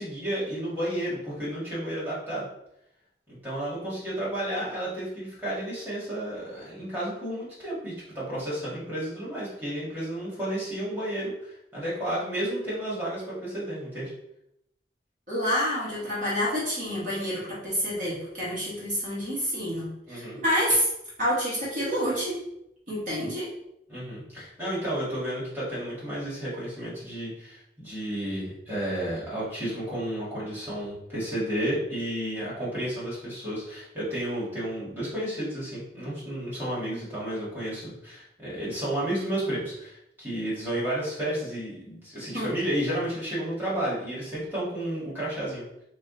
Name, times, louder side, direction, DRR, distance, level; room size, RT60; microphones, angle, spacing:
voice 1, 0.0-2.5 3.3-14.1 20.1-20.4 23.9-45.7, right 1 dB, 10° right, -9 dB, 1.6 m, -32 dB
voice 2, 15.3-20.9 21.2-22.4 22.9-23.5 42.3-42.5, equal, 45° right, -7 dB, 1.3 m, -28 dB
4.8 x 2.2 x 3.8 m, 0.80 s
head